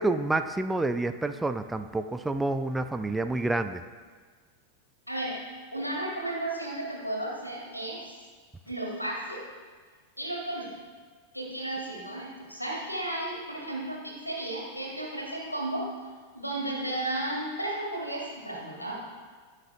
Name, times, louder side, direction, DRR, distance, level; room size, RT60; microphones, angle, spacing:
voice 1, 0.0-3.8, right 2 dB, 10° right, 9 dB, 0.4 m, -28 dB
voice 2, 5.1-5.4 5.7-8.1 8.7-9.4 10.2-10.7 11.3-15.9 16.3-18.9, right 1 dB, 90° left, -2 dB, 2.4 m, -33 dB
18.0 x 6.5 x 2.6 m, 1.5 s
figure-of-eight pair, 90°, 0 cm